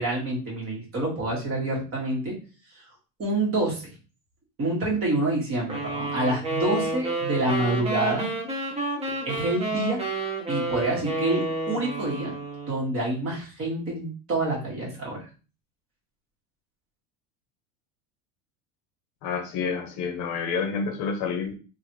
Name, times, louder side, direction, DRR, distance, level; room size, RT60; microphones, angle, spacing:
voice 1, 0.0-2.3 3.2-3.9 4.6-8.4 9.1-10.0 10.5-12.4 12.7-15.3, right 2 dB, 35° right, -3 dB, 1.9 m, -27 dB
sound 1, 5.7-12.9, right 2 dB, 15° right, 0.7 m, -30 dB
voice 2, 19.2-21.5, left 5 dB, 50° left, 6 dB, 0.8 m, -29 dB
3.7 x 2.6 x 3.0 m, 0.35 s
supercardioid pair, 135°, 39 cm